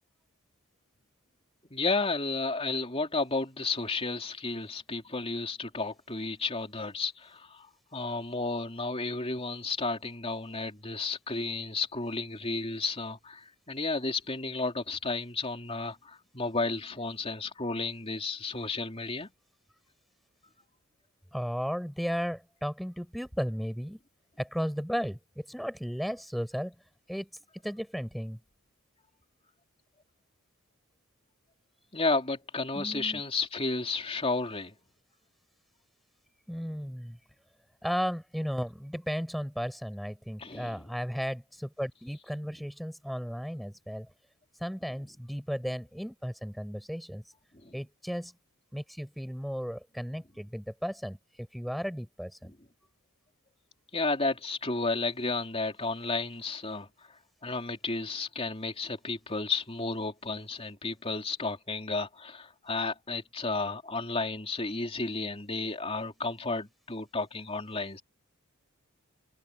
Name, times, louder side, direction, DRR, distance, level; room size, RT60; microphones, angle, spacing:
voice 1, 1.7-7.7 7.9-19.3 31.9-34.7 40.4-40.8 47.6-47.7 53.9-56.9 57.4-68.0, left 3 dB, 25° left, 3.6 m, -32 dB
voice 2, 21.3-24.0 24.4-26.7 27.1-27.3 27.6-28.4 32.7-33.2 36.5-37.2 37.8-44.1 44.6-47.2 47.7-48.3 48.7-52.5, equal, ahead, 7.6 m, -35 dB
head